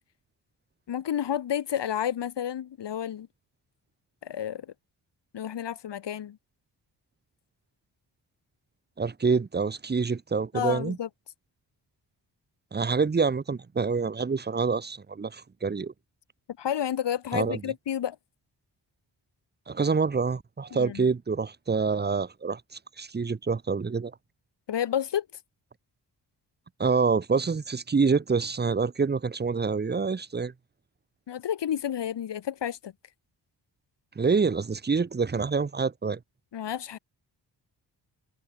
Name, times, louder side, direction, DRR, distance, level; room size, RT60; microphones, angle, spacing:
voice 1, 0.9-3.3 4.2-4.7 5.3-6.4 10.5-11.1 16.6-18.2 20.7-21.1 24.7-25.3 31.3-32.9 36.5-37.0, left 10 dB, 80° left, 3.2 m, -30 dB
voice 2, 9.0-11.0 12.7-15.9 17.3-17.6 19.7-22.6 23.0-24.1 26.8-30.5 34.2-36.2, right 5 dB, 25° right, 1.1 m, -26 dB
wide cardioid pair, 130°, 42 cm